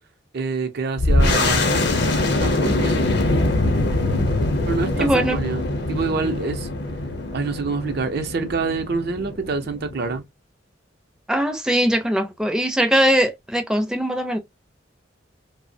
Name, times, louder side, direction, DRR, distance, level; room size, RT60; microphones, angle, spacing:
voice 1, 0.3-1.9 2.4-3.0 4.7-5.6 5.9-6.7 7.3-10.2, right 4 dB, 55° right, 0.5 m, -26 dB
sound 1, 1.0-10.2, left 2 dB, 60° left, 0.6 m, -23 dB
voice 2, 4.9-5.4 6.2-6.3 11.3-14.4, equal, 5° right, 0.4 m, -21 dB
2.7 x 2.0 x 2.5 m
head